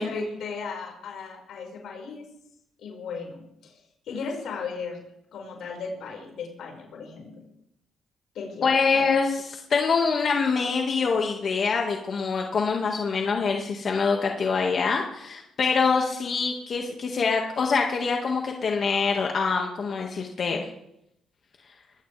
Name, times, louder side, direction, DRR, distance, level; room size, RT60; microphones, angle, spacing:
voice 1, 0.0-2.3 2.8-3.7 4.1-5.0 5.3-7.3 8.3-9.0, left 4 dB, 75° left, 0 dB, 5.5 m, -36 dB
voice 2, 8.6-20.6, left 5 dB, 50° left, 1 dB, 1.9 m, -25 dB
20.0 x 17.0 x 3.5 m, 0.81 s
cardioid pair, 90°, 0 cm